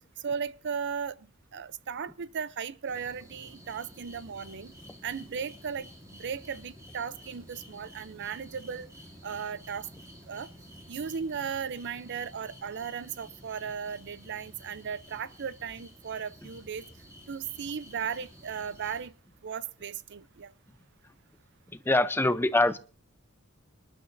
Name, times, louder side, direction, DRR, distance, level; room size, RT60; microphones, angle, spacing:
voice 1, 0.2-1.1 1.5-4.7 5.0-5.9 6.2-8.9 9.2-9.9 10.3-10.5 10.9-16.8 17.3-19.1 19.4-20.5, right 6 dB, 55° right, 17 dB, 0.5 m, -36 dB
sound 1, 2.9-19.1, equal, 15° right, 2.7 m, -51 dB
voice 2, 21.7-22.8, left 2 dB, 10° left, 13 dB, 0.6 m, -24 dB
25.0 x 11.5 x 2.6 m, 0.36 s
head